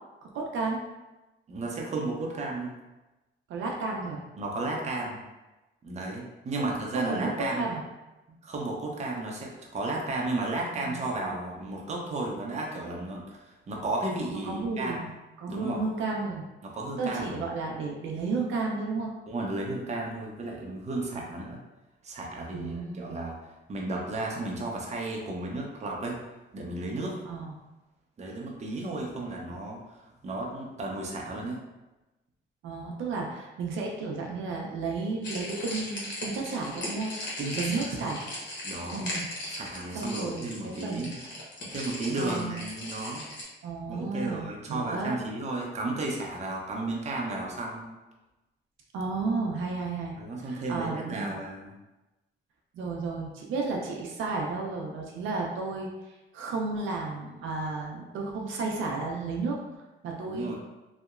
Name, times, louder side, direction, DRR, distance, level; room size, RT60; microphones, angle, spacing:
voice 1, 0.3-0.8 3.5-4.2 6.6-7.8 10.8-11.3 14.2-16.4 17.0-19.1 22.5-23.2 27.3-27.5 32.6-37.1 37.6-38.2 38.9-39.3 39.9-41.1 42.2-42.6 43.6-45.2 48.9-50.2 50.4-51.4 52.7-59.6 60.0-60.5, right 3 dB, 80° right, -1 dB, 0.5 m, -33 dB
voice 2, 1.5-2.7 4.4-5.2 5.8-7.7 8.3-15.0 15.5-15.8 16.6-17.4 19.3-21.6 22.0-23.4 23.7-26.2 26.5-27.2 28.2-31.6 37.4-38.1 38.6-39.0 39.5-41.2 41.7-43.3 43.9-47.9 50.2-51.7 60.3-60.5, right 2 dB, 35° right, -1 dB, 0.6 m, -33 dB
sound 1, 35.2-43.4, left 1 dB, 65° left, 0.9 m, -38 dB
2.8 x 2.0 x 2.4 m, 1.1 s
cardioid pair, 90°, 20 cm